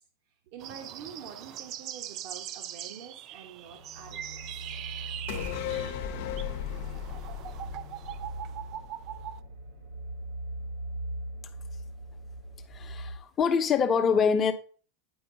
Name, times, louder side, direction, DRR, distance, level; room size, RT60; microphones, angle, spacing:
voice 1, 0.5-4.7, right 7 dB, 60° right, 1.4 m, -46 dB
sound 1, 0.6-9.4, right 11 dB, 45° right, 0.5 m, -42 dB
sound 2, 3.7-13.2, right 1 dB, 75° right, 2.8 m, -41 dB
sound 3, 5.3-8.9 9.2-9.3, left 10 dB, 70° left, 0.9 m, -36 dB
voice 2, 12.7-14.5, left 6 dB, 25° left, 1.0 m, -25 dB
9.6 x 4.6 x 4.1 m
supercardioid pair, 125°, 0 cm